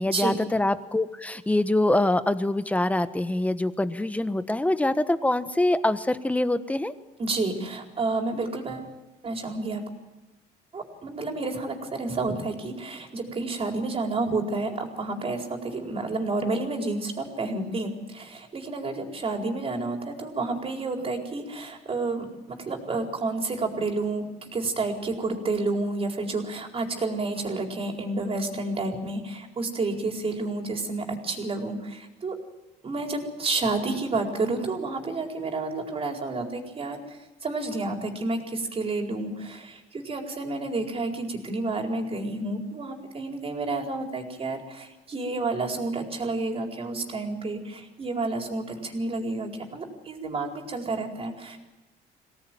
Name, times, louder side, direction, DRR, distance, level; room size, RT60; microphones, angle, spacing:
voice 1, 0.0-6.9, left 1 dB, 10° left, 12 dB, 1.3 m, -24 dB
voice 2, 7.2-8.9 9.2-9.8 10.7-32.3 32.8-37.0 37.4-51.6, right 3 dB, 35° right, 3 dB, 4.5 m, -30 dB
23.5 x 18.0 x 9.3 m, 1.0 s
cardioid pair, 110°, 17 cm